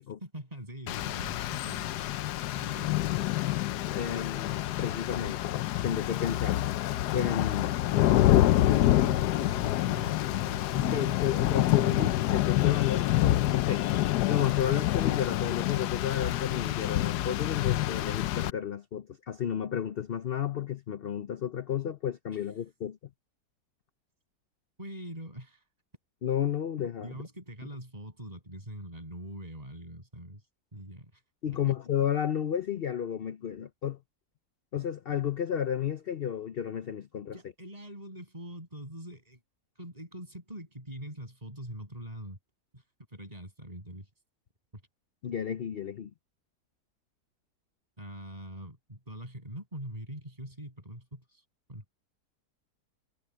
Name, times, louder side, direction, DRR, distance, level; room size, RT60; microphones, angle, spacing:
voice 1, 0.2-2.0 2.5-3.5 8.9-12.0 22.3-22.4 24.8-25.7 27.0-30.4 30.7-31.2 37.3-39.4 39.8-42.4 42.7-42.8 43.1-44.1 44.7-44.8 48.0-51.4 51.7-52.0, right 1 dB, 25° right, 7.5 m, -43 dB
Rain, 0.9-18.5, left 14 dB, 90° left, 1.2 m, -27 dB
voice 2, 3.9-5.5 5.8-6.6 7.1-7.7 10.7-13.9 14.3-23.0 26.2-27.1 31.4-34.0 34.7-37.3 45.2-46.1, left 9 dB, 55° left, 0.7 m, -32 dB
omnidirectional pair, 1.7 m